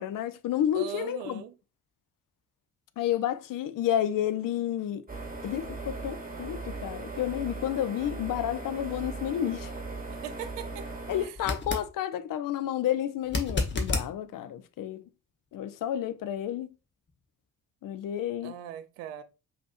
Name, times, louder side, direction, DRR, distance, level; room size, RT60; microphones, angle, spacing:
voice 1, 0.0-1.4 3.0-5.0 5.4-9.7 11.1-15.0 15.5-16.7 17.8-18.6, left 11 dB, 45° left, 0.6 m, -30 dB
voice 2, 0.7-1.5 10.1-10.9 11.2-11.4 18.4-19.2, right 10 dB, 70° right, 0.7 m, -40 dB
sound 1, 5.1-11.3, right 3 dB, 20° right, 1.5 m, -38 dB
sound 2, 11.4-11.9 13.2-14.1 17.1-17.2, left 3 dB, 25° left, 1.1 m, -30 dB
5.2 x 2.8 x 2.5 m
figure-of-eight pair, 40°, 45 cm